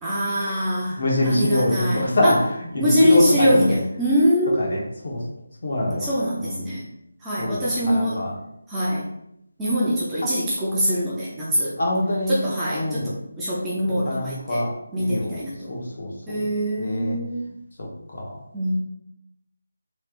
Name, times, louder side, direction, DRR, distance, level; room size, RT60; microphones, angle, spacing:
voice 1, 0.0-2.4 2.8-4.8 6.0-6.9 7.2-8.2 8.7-9.1 9.6-11.8 12.3-14.6 14.9-15.7 16.3-17.5 18.5-18.8, equal, 5° right, -9 dB, 0.5 m, -23 dB
voice 2, 1.0-2.4 2.7-3.8 4.6-5.2 5.6-6.1 6.4-6.6 7.4-8.3 10.2-10.3 11.8-12.5 12.7-13.1 14.0-14.7 14.9-15.4 15.7-16.4 16.8-17.2 17.8-18.3, left 1 dB, 50° left, -1 dB, 1.1 m, -24 dB
4.4 x 3.2 x 2.5 m, 0.78 s
figure-of-eight pair, 175°, 0 cm